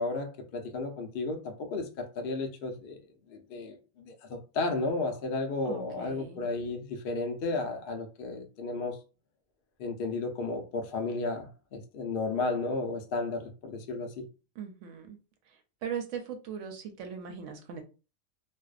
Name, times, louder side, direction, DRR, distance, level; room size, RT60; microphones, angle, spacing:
voice 1, 0.0-3.0 3.3-9.0 9.8-14.2, left 3 dB, 75° left, 0.5 m, -33 dB
voice 2, 5.7-6.4 14.6-15.2 15.8-17.8, right 7 dB, 70° right, 0.8 m, -39 dB
2.5 x 2.0 x 2.3 m
omnidirectional pair, 1.5 m